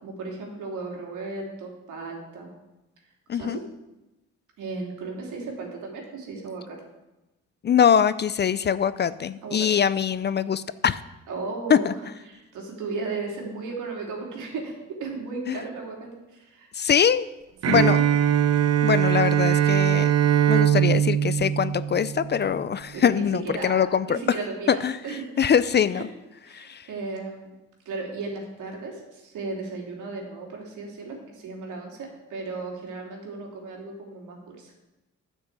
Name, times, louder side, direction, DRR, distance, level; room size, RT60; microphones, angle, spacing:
voice 1, 0.0-2.5 3.3-3.6 4.6-6.8 9.4-9.7 11.3-11.9 12.3-16.1 16.4-16.7 17.7-18.0 22.9-25.3 26.0-26.1 26.5-27.5 27.8-34.7, right 3 dB, 80° right, 0 dB, 3.0 m, -35 dB
voice 2, 3.3-3.6 7.6-11.0 11.7-11.9 15.5-15.6 16.7-17.3 17.7-18.0 18.8-20.1 20.5-24.2 24.7-25.0 25.4-26.1 26.5-26.9, left 8 dB, 35° left, 15 dB, 0.4 m, -23 dB
Bowed string instrument, 17.6-22.5, right 10 dB, 55° right, 0.7 m, -21 dB
10.0 x 6.3 x 8.2 m, 1.0 s
cardioid pair, 90°, 30 cm